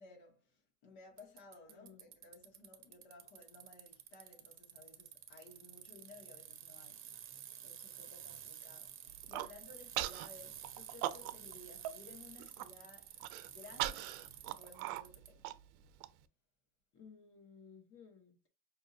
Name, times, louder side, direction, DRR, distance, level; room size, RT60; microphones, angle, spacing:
voice 1, 0.0-13.2 13.4-14.2 14.6-15.5, left 3 dB, 75° left, 1.9 m, -58 dB
Bicycle, 1.2-15.3, right 9 dB, 30° right, 0.7 m, -52 dB
voice 2, 1.7-2.1 16.9-18.5, left 6 dB, 35° left, 0.9 m, -58 dB
Human voice, 9.1-9.5 10.0-10.3 10.6-11.5 11.8-11.9 12.3-12.7 13.2-16.1, right 14 dB, 90° right, 0.5 m, -39 dB
5.1 x 2.6 x 2.6 m
supercardioid pair, 110°, 41 cm